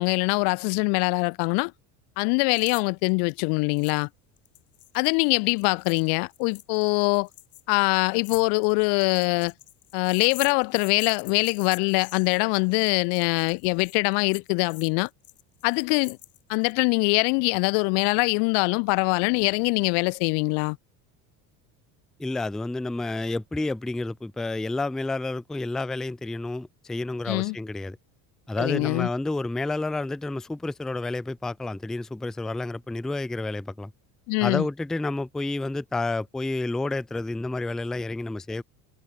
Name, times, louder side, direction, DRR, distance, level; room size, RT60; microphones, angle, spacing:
voice 1, 0.0-1.7 2.2-4.1 4.9-7.3 7.7-9.5 9.9-15.1 15.6-16.2 16.5-20.8 27.3-27.6 28.6-29.1 34.3-34.7, left 40 dB or more, 65° left, 0.5 m, -23 dB
sound 1, 2.5-2.8 3.1-3.2 3.8-4.1 4.4-16.7, left 13 dB, 35° left, 1.1 m, -45 dB
voice 2, 22.2-28.0 28.5-33.9 34.4-38.6, left 2 dB, ahead, 0.4 m, -30 dB
cardioid pair, 155°, 42 cm